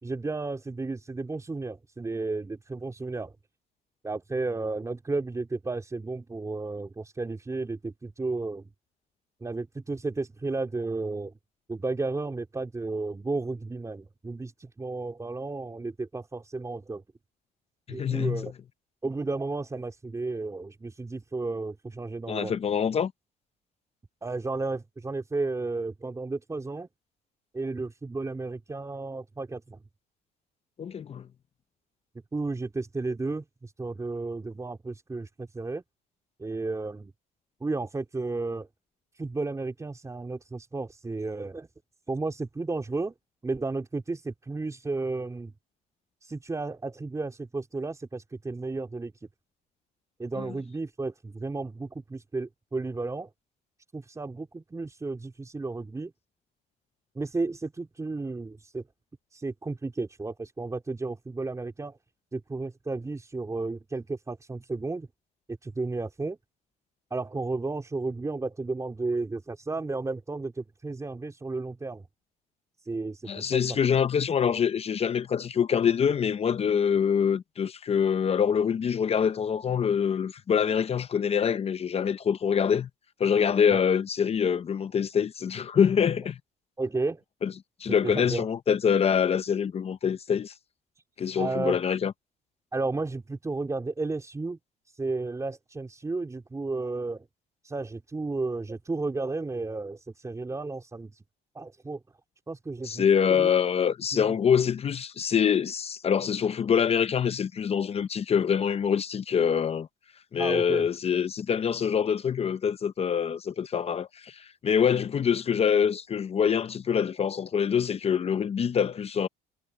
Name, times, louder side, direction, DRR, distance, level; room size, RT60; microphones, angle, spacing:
voice 1, 0.0-3.4 4.0-8.7 9.4-11.3 11.7-17.0 17.9-18.5 19.0-22.6 24.2-26.9 27.5-29.8 32.3-35.8 36.4-37.1 37.6-38.7 39.1-41.7 42.1-43.1 43.4-45.5 46.2-49.3 50.2-53.3 53.9-56.1 57.1-58.8 59.3-62.0 62.3-65.1 65.6-66.4 67.1-72.1 72.8-73.7 83.7-83.8 86.8-87.2 88.0-88.5 91.4-91.8 92.7-94.6 94.9-97.3 97.6-101.2 101.5-102.0 102.5-103.5 104.1-104.4 110.4-110.9, right 3 dB, 20° right, 4.0 m, -33 dB
voice 2, 17.9-18.5 22.3-23.1 30.8-31.3 50.4-50.5 73.3-82.9 83.2-86.4 87.4-87.5 87.8-90.5 91.2-92.1 102.8-109.9 110.3-119.3, left 7 dB, 35° left, 0.8 m, -25 dB
cardioid pair, 110°, 17 cm